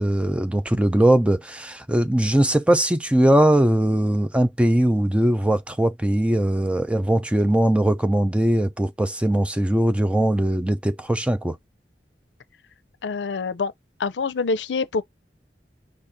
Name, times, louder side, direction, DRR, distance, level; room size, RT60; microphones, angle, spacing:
voice 1, 0.0-11.6, right 1 dB, 5° right, 0.4 m, -20 dB
voice 2, 13.0-13.7 14.0-15.0, left 4 dB, 90° left, 0.5 m, -25 dB
5.1 x 2.5 x 4.0 m
head